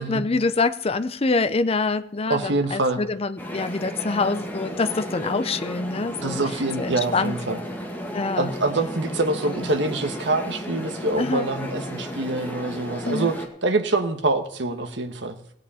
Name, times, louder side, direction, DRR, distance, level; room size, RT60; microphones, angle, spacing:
voice 1, 0.0-6.4 6.8-7.3 8.1-8.5 11.2-11.5 13.0-13.3, left 3 dB, 30° left, 12 dB, 0.6 m, -25 dB
voice 2, 2.3-3.0 6.2-7.6 8.3-13.4 13.6-15.4, right 2 dB, 65° right, 7 dB, 1.3 m, -25 dB
sound 1, 3.4-13.5, equal, 10° left, 1.8 m, -34 dB
17.5 x 8.3 x 4.3 m, 0.77 s
head